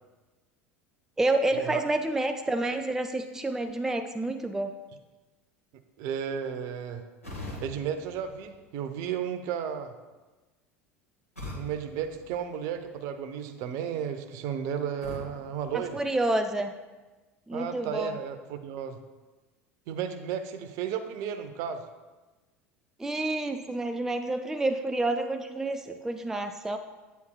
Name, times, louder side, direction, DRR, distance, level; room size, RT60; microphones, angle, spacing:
voice 1, 1.2-4.7 15.9-16.7 17.5-18.2 23.0-26.8, right 2 dB, 5° right, 7 dB, 0.4 m, -29 dB
voice 2, 6.0-7.0 7.6-9.9 11.5-16.0 17.5-19.0 19.9-21.8, right 8 dB, 50° right, 8 dB, 0.6 m, -33 dB
sound 1, 7.2-9.2 11.4-13.1 15.0-16.6, left 2 dB, 90° left, 1.1 m, -44 dB
9.1 x 8.2 x 2.2 m, 1.2 s
figure-of-eight pair, 75°, 7 cm